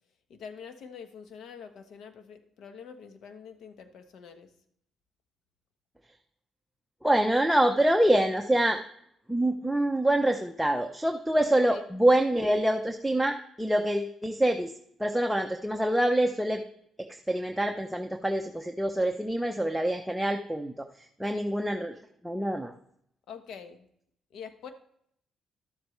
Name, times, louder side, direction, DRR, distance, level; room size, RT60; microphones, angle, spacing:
voice 1, 0.3-4.5 11.7-11.8 21.3-21.5 23.3-23.9 24.3-24.7, left 6 dB, 75° left, 8 dB, 1.2 m, -45 dB
voice 2, 7.0-8.8 9.3-14.7 15.0-16.6 17.0-20.9 21.2-22.0 22.2-22.7, right 1 dB, ahead, 4 dB, 0.8 m, -26 dB
12.0 x 7.8 x 3.3 m, 0.71 s
cardioid pair, 90°, 0 cm